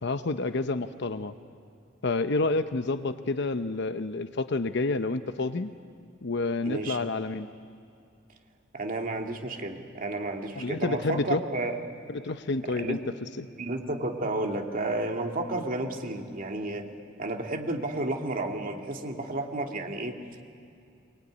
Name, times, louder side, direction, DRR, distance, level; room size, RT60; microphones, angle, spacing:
voice 1, 0.0-1.3 2.0-5.7 6.2-7.5 10.6-11.4 12.1-13.0 13.4-13.5, left 3 dB, 65° left, 10 dB, 0.8 m, -29 dB
voice 2, 6.6-7.0 8.7-11.8 12.7-13.0 13.6-16.8 17.2-20.2, right 2 dB, 45° right, 2 dB, 2.3 m, -32 dB
23.5 x 22.0 x 9.8 m, 2.5 s
head